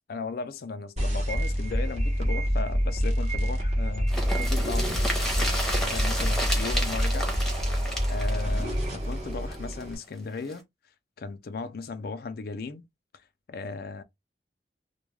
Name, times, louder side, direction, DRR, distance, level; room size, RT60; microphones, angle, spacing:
voice 1, 0.1-7.7 8.1-10.6 11.2-12.8 13.5-14.0, left 4 dB, 60° left, 0.4 m, -37 dB
sound 1, 1.0-10.0, equal, 40° right, 0.9 m, -27 dB
sound 2, 4.1-9.8 10.1-10.2 10.5-10.6, equal, 5° left, 0.8 m, -32 dB
2.3 x 2.2 x 3.1 m
head